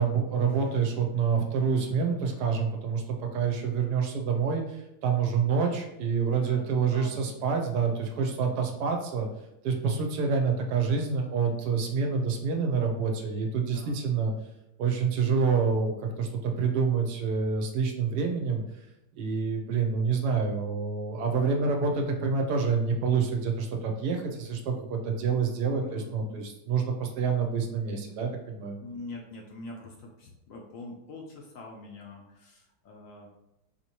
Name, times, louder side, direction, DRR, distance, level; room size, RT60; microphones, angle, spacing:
voice 1, 0.0-9.3 9.6-14.3 14.8-18.6 19.2-28.8, right 5 dB, 80° right, 3 dB, 1.2 m, -27 dB
voice 2, 6.3-7.4 13.6-14.0 25.7-26.5 27.3-28.2 28.8-33.3, left 2 dB, 65° left, 0 dB, 0.9 m, -45 dB
4.4 x 2.8 x 3.0 m, 0.90 s
omnidirectional pair, 1.8 m